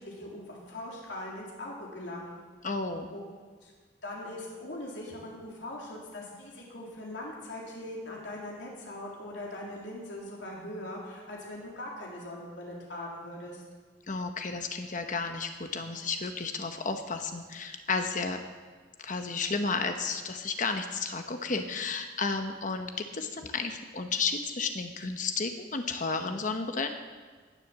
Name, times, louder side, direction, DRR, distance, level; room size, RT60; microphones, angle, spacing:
voice 1, 0.0-2.4 3.1-3.2 3.6-3.7 4.0-13.6, left 1 dB, 90° left, -3 dB, 3.4 m, -41 dB
voice 2, 2.6-3.1 14.1-18.4 19.0-26.9, left 4 dB, 45° left, 6 dB, 1.0 m, -32 dB
19.0 x 7.7 x 7.4 m, 1.5 s
head